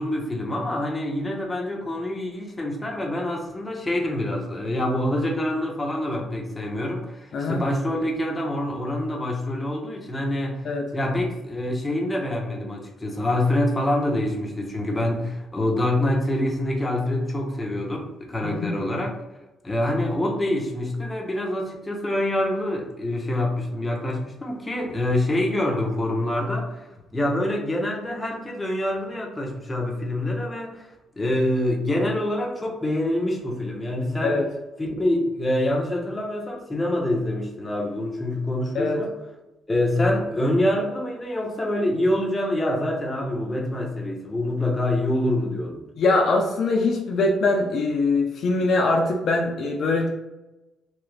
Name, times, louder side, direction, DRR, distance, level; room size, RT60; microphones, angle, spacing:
voice 1, 0.0-10.7 10.9-19.2 19.6-30.9 31.2-34.4 34.8-39.1 39.7-45.8, left 1 dB, 20° left, 0 dB, 0.8 m, -26 dB
voice 2, 18.4-18.8 34.2-34.5 38.7-39.0 46.0-50.1, left 3 dB, 65° left, 1 dB, 0.5 m, -22 dB
3.0 x 2.4 x 3.2 m, 1.0 s
cardioid pair, 90°, 0 cm